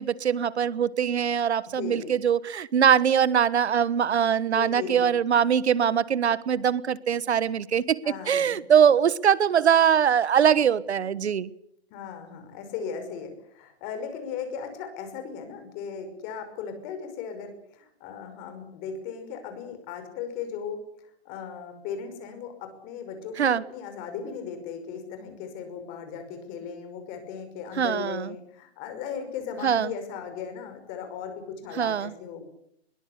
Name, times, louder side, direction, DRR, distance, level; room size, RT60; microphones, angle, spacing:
voice 1, 0.0-11.5 23.4-23.6 27.8-28.3 29.6-29.9 31.7-32.1, right 8 dB, 85° right, 19 dB, 1.4 m, -22 dB
voice 2, 1.8-2.1 4.5-5.1 8.0-8.6 11.9-20.8 21.2-32.4, left 7 dB, 25° left, 7 dB, 5.7 m, -37 dB
22.0 x 21.5 x 8.3 m, 0.72 s
hypercardioid pair, 160°, 32 cm